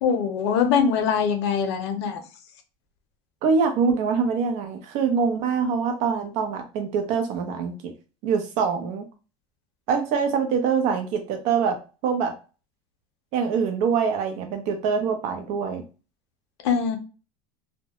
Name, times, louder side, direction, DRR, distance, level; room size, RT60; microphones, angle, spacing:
voice 1, 0.0-2.2 16.6-17.0, left 6 dB, 80° left, 7 dB, 0.6 m, -22 dB
voice 2, 3.4-7.9 8.2-9.1 9.9-11.8 12.0-12.3 13.3-15.8, right 6 dB, 65° right, 5 dB, 0.7 m, -24 dB
2.1 x 2.1 x 2.8 m, 0.33 s
supercardioid pair, 105°, 14 cm